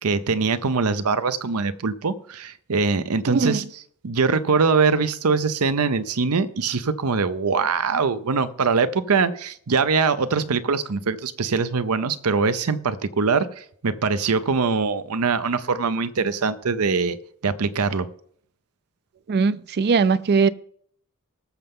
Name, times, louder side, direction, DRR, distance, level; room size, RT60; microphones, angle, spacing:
voice 1, 0.0-3.6 4.0-17.2 17.4-18.1, right 4 dB, 80° right, 0.7 m, -23 dB
voice 2, 3.3-3.6 19.3-20.5, right 4 dB, 50° right, 0.4 m, -20 dB
19.5 x 6.8 x 3.7 m
head